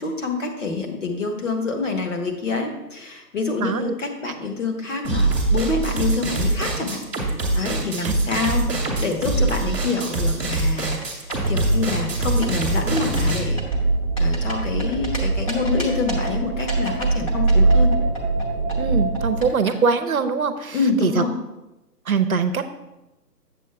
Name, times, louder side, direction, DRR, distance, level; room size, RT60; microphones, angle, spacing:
voice 1, 0.0-11.0 11.5-13.6 14.2-17.9 20.7-21.3, left 4 dB, 45° left, 3 dB, 1.4 m, -26 dB
voice 2, 3.6-3.9 8.0-8.1 18.8-20.8 21.0-21.2 22.1-22.7, right 5 dB, 55° right, 10 dB, 0.8 m, -22 dB
sound 1, 5.0-13.4, right 2 dB, 5° right, 0.9 m, -23 dB
sound 2, 10.8-11.5 11.9-12.6 13.0-13.3 13.6-15.2 15.5-16.3 16.7-18.4 18.7-19.7, right 1 dB, 20° left, 1.0 m, -33 dB
sound 3, 11.3-19.5, right 3 dB, 30° right, 1.1 m, -23 dB
8.4 x 7.5 x 3.4 m, 0.99 s
figure-of-eight pair, 140°, 50 cm